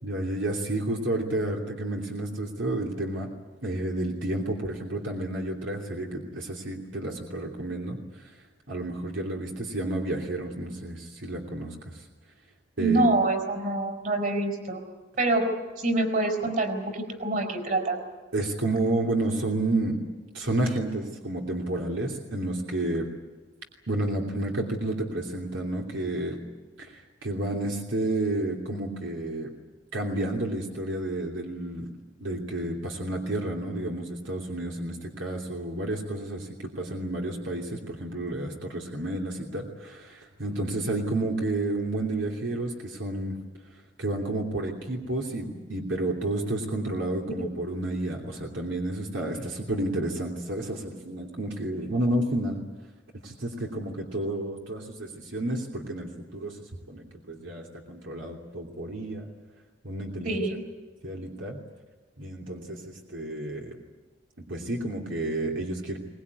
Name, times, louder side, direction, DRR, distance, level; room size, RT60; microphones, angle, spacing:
voice 1, 0.0-3.3 3.6-8.3 8.7-12.0 12.8-13.1 18.3-20.0 20.3-23.1 23.9-26.4 26.8-29.5 29.9-31.9 32.2-43.4 44.0-52.6 53.2-56.6 56.9-59.3 59.8-60.4 61.0-61.6 62.2-63.8 64.4-66.0, right 1 dB, 85° right, 0 dB, 3.0 m, -31 dB
voice 2, 12.8-14.8 15.2-15.5 15.8-18.0 60.2-60.6, right 2 dB, 45° right, 4 dB, 4.6 m, -26 dB
23.0 x 20.0 x 9.7 m, 1.3 s
head